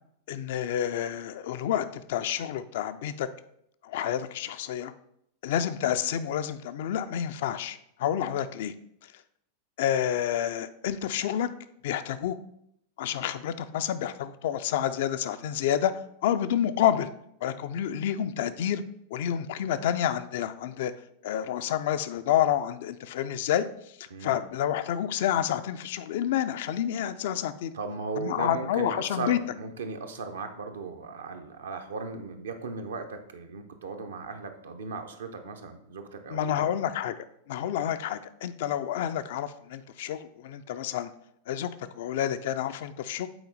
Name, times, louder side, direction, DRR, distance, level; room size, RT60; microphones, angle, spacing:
voice 1, 0.3-3.3 3.8-4.9 5.4-8.7 9.8-11.5 11.8-12.4 13.0-17.1 17.4-18.8 19.1-20.9 21.2-23.7 24.0-27.7 28.2-29.4 36.3-37.1 37.5-41.1 41.5-43.3, left 10 dB, 55° left, 11 dB, 0.4 m, -29 dB
voice 2, 24.1-24.4 27.7-36.7, right 4 dB, 65° right, 6 dB, 0.8 m, -37 dB
7.8 x 4.3 x 4.0 m, 0.73 s
figure-of-eight pair, 90°, 0 cm